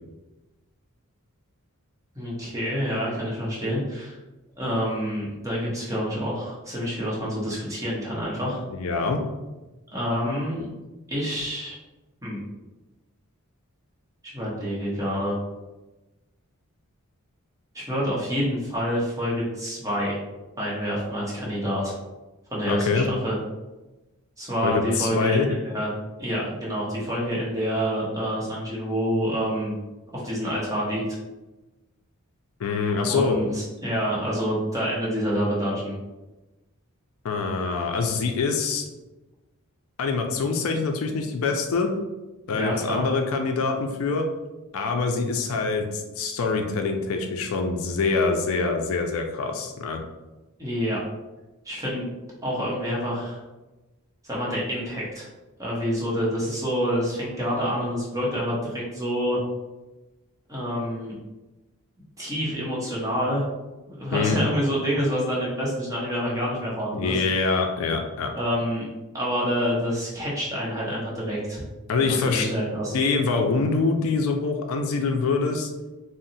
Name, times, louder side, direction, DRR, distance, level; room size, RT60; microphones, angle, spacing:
voice 1, 2.1-4.2 4.6-8.6 9.9-10.7 11.1-11.8 12.2-12.4 14.2-15.3 17.7-20.2 20.6-22.0 22.5-23.4 24.4-25.9 26.2-29.7 30.1-31.0 33.1-35.9 42.5-43.0 50.6-51.0 51.6-52.1 52.4-53.4 54.2-55.3 55.6-59.4 60.5-61.1 62.2-63.4 63.9-67.2 68.3-68.8 69.1-71.6 72.0-73.0, equal, 15° right, -6 dB, 0.9 m, -27 dB
voice 2, 8.7-9.2 22.7-23.1 24.6-25.5 32.6-33.4 37.2-38.8 40.0-41.9 42.5-44.2 44.7-50.0 64.1-64.4 66.9-68.3 71.9-72.5 72.9-75.7, left 4 dB, 65° left, 4 dB, 0.4 m, -25 dB
2.7 x 2.0 x 3.9 m, 1.1 s
head